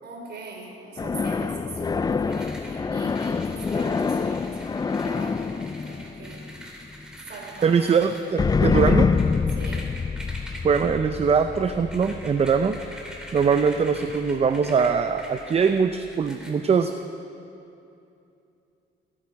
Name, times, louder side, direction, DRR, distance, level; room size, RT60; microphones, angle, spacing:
voice 1, 0.0-6.5 7.3-7.8 8.2-8.5 9.5-9.9, right 3 dB, 55° right, 0 dB, 3.7 m, -41 dB
sound 1, 1.0-6.9 8.4-13.7, left 5 dB, 20° left, 0.3 m, -26 dB
sound 2, 2.3-16.5, equal, 5° right, 2.7 m, -44 dB
voice 2, 7.6-9.1 10.6-12.7 13.3-16.9, right 6 dB, 30° right, 8 dB, 0.6 m, -22 dB
21.0 x 8.8 x 5.3 m, 2.7 s
cardioid pair, 90°, 20 cm